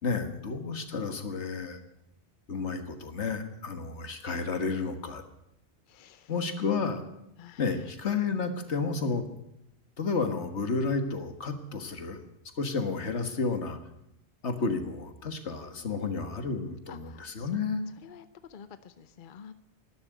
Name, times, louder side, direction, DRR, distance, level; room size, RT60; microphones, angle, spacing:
voice 1, 0.0-1.8 2.5-5.2 6.3-7.0 7.6-9.3 10.0-12.2 12.6-13.8 14.4-17.8, left 4 dB, 85° left, 8 dB, 1.8 m, -31 dB
voice 2, 5.9-6.3 7.4-7.6 16.9-17.6 18.0-18.2 18.5-19.5, left 7 dB, 50° left, 12 dB, 0.9 m, -49 dB
12.5 x 11.5 x 9.2 m, 0.82 s
omnidirectional pair, 1.1 m